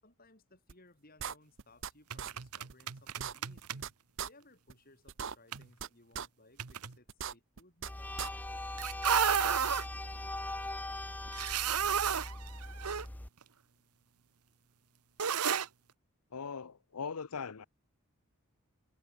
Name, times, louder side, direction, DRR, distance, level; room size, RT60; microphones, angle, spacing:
voice 1, 0.0-3.9 4.3-7.9, left 2 dB, 40° left, 7.5 m, -62 dB
sound 1, 0.7-0.8 1.2-1.9 2.2-2.3 2.7-2.8 3.1-3.9 4.2-4.3 4.7-4.8 5.1-5.9 6.2-6.3 6.7-6.8 7.1-7.9 8.2-8.3, right 8 dB, 55° right, 0.8 m, -39 dB
sound 2, 2.1-3.9 5.5-5.7 6.6-7.0 8.8-9.9 11.3-13.1 13.4-13.5 15.2-15.7, right 7 dB, 85° right, 1.0 m, -32 dB
sound 3, 7.8-13.3, left 1 dB, 5° left, 0.5 m, -40 dB
voice 2, 16.3-17.7, left 5 dB, 85° left, 0.8 m, -40 dB
head